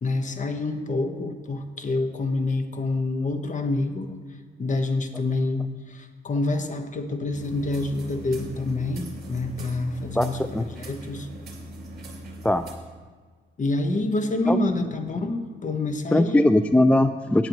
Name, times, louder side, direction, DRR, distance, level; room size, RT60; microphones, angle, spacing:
voice 1, 0.0-4.1 4.6-11.3 13.6-16.4, left 2 dB, 40° left, 7 dB, 1.2 m, -27 dB
sound 1, 7.3-12.7, right 1 dB, 50° right, 3.4 m, -40 dB
voice 2, 16.1-17.5, left 1 dB, 5° left, 11 dB, 0.3 m, -19 dB
17.0 x 9.9 x 3.1 m, 1.5 s
cardioid pair, 90°, 20 cm